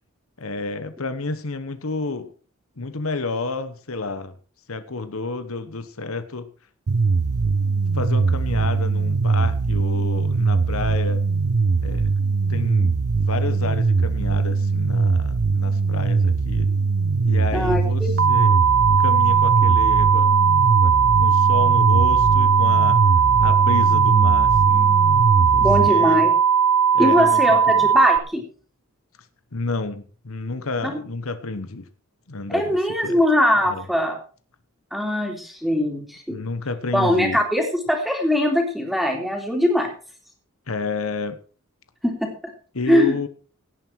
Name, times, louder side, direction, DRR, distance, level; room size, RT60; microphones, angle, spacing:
voice 1, 0.4-2.3 2.8-4.4 4.7-6.5 7.0-7.1 7.4-7.5 7.9-11.2 11.8-12.1 12.5-16.7 17.2-18.6 19.0-20.4 20.8-23.0 23.4-25.0 25.4-26.3 26.9-27.9 29.5-31.9 32.3-32.8 33.0-33.2 33.6-33.9 36.3-37.4 40.7-41.4 42.7-43.3, left 3 dB, 75° left, 11 dB, 1.1 m, -30 dB
sound 1, 6.9-25.9, right 4 dB, 90° right, 0.7 m, -21 dB
voice 2, 17.5-18.1 25.6-26.3 27.0-28.4 30.8-30.9 32.5-34.2 34.9-36.4 36.9-39.9 42.0-42.3 42.9-43.2, equal, ahead, 2 dB, 3.2 m, -21 dB
sound 2, 18.2-28.2, right 7 dB, 55° right, 1.0 m, -18 dB
17.5 x 9.4 x 4.6 m, 0.39 s
head